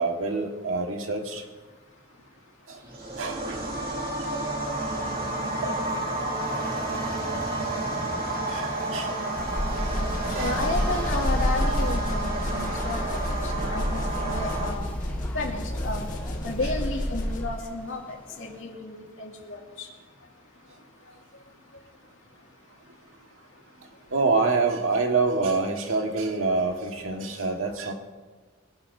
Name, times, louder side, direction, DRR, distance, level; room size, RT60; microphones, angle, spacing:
voice 1, 0.0-1.4 3.2-3.6 5.6-5.9 8.5-9.1 10.3-10.5 24.1-27.9, right 3 dB, 85° right, 2 dB, 1.7 m, -26 dB
sound 1, 2.8-14.7, right 2 dB, 50° right, 2.3 m, -31 dB
sound 2, 4.6-18.6, left 1 dB, 10° left, 1.1 m, -43 dB
sound 3, 9.4-17.7, left 1 dB, 40° left, 1.4 m, -29 dB
voice 2, 10.4-14.9 15.3-16.1 16.4-19.9, left 2 dB, 70° left, -1 dB, 2.4 m, -33 dB
23.0 x 11.0 x 2.7 m, 1.4 s
head